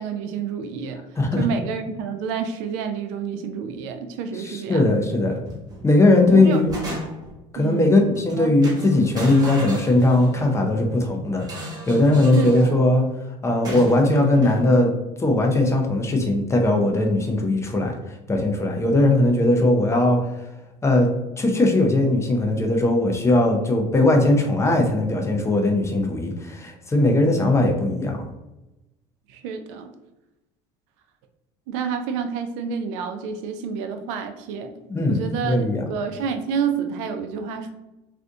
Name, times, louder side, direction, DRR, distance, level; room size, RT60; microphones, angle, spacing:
voice 1, 0.0-1.0 1.4-4.8 6.3-6.9 7.6-7.9 8.3-8.5 12.3-12.7 19.5-19.6 29.3-29.9 31.7-34.7 35.1-35.6 35.9-37.7, right 6 dB, 90° right, 7 dB, 0.4 m, -29 dB
voice 2, 4.4-5.4 5.8-7.0 7.5-13.0 13.4-14.9 15.2-18.0 18.3-20.3 20.8-21.1 21.4-28.3 34.9-35.8, left 2 dB, 20° left, 2 dB, 0.6 m, -19 dB
sound 1, 5.4-5.9 6.3-7.4 8.1-8.3 8.6-10.5 11.4-12.7 13.6-14.6, right 1 dB, 25° right, 1.0 m, -35 dB
2.6 x 2.5 x 3.5 m, 0.97 s
supercardioid pair, 105°, 15 cm